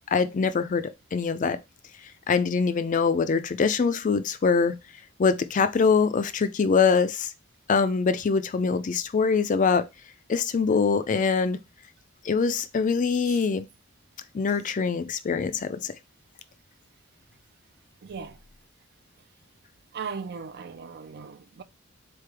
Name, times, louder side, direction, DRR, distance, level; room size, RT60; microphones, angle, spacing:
voice 1, 0.1-1.6 2.3-4.8 5.2-7.3 7.7-9.8 10.3-11.6 12.2-13.7 14.3-15.9, left 5 dB, 40° left, 0.4 m, -23 dB
voice 2, 18.0-18.4 19.9-21.6, right 5 dB, 55° right, 0.4 m, -38 dB
3.9 x 3.3 x 3.3 m
head